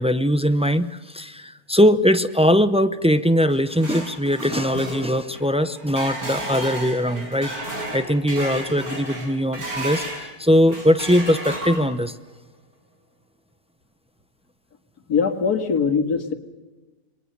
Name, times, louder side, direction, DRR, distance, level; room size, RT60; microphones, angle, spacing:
voice 1, 0.0-12.1, equal, 10° right, 11 dB, 0.3 m, -21 dB
sound 1, 3.3-10.3 10.7-12.1, right 1 dB, 70° right, 6.2 m, -33 dB
voice 2, 15.1-16.3, left 5 dB, 80° left, 7 dB, 2.5 m, -21 dB
28.0 x 22.0 x 6.7 m, 1.2 s
omnidirectional pair, 1.6 m